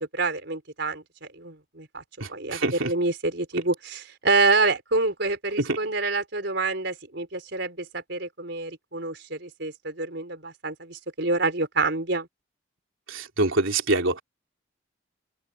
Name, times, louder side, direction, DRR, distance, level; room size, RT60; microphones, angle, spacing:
voice 1, 0.1-2.0 2.3-12.3, right 3 dB, 60° right, 4.8 m, -27 dB
voice 2, 2.2-2.9 5.7-5.8 13.1-14.2, right 2 dB, 85° right, 3.4 m, -25 dB
open air
head